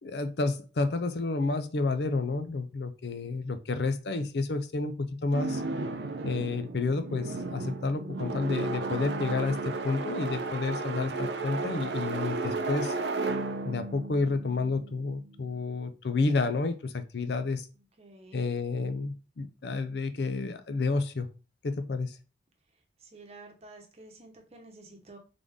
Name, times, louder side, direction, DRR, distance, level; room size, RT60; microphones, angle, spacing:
voice 1, 0.0-5.6 6.2-12.9 13.6-17.7 18.3-21.3 21.6-22.2, left 3 dB, 70° left, 9 dB, 0.5 m, -30 dB
sound 1, 5.3-15.3, right 3 dB, 75° right, 0.6 m, -34 dB
voice 2, 18.0-18.5 23.0-25.2, right 2 dB, 35° right, 2 dB, 1.0 m, -51 dB
3.8 x 3.4 x 3.5 m, 0.33 s
head